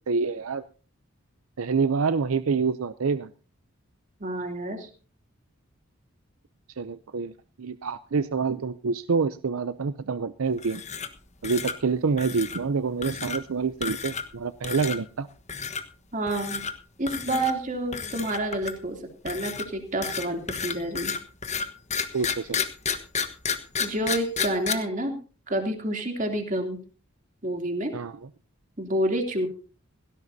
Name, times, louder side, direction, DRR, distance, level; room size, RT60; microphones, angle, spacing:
voice 1, 0.1-0.6 1.6-3.3 6.8-10.8 11.4-15.3 22.1-22.6 27.9-28.3, right 5 dB, 85° right, 13 dB, 0.6 m, -27 dB
voice 2, 4.2-4.9 16.1-16.6 17.0-19.0 19.2-21.1 23.8-25.2 25.5-26.8 27.4-27.9 28.8-29.5, right 1 dB, 40° right, 3 dB, 3.0 m, -28 dB
sound 1, 10.6-11.2 11.4-11.8 12.2-12.6 13.0-13.4 13.8-14.4 14.6-15.0 15.5-15.8 16.3-16.7 17.1-17.5 17.9-18.9 19.3-24.7, left 6 dB, 35° left, 1.3 m, -31 dB
17.5 x 17.0 x 2.8 m, 0.38 s
head